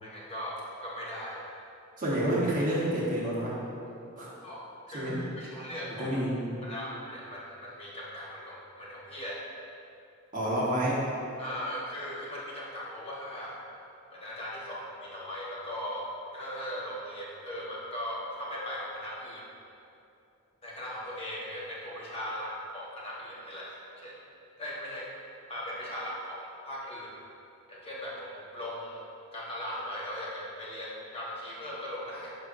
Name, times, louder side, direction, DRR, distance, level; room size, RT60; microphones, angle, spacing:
voice 1, 0.0-1.4 4.4-4.6 4.9-6.1 6.6-9.4 11.4-13.6 14.1-16.1 16.3-19.5 20.6-24.2 24.6-25.1 25.5-27.1 27.7-29.0 29.3-32.4, equal, 25° left, -6 dB, 1.2 m, -39 dB
voice 2, 2.0-3.6 4.2-4.3 4.9-5.2 6.0-6.4 10.3-11.0, right 1 dB, 40° right, -6 dB, 1.3 m, -28 dB
6.5 x 6.1 x 2.6 m, 2.7 s
head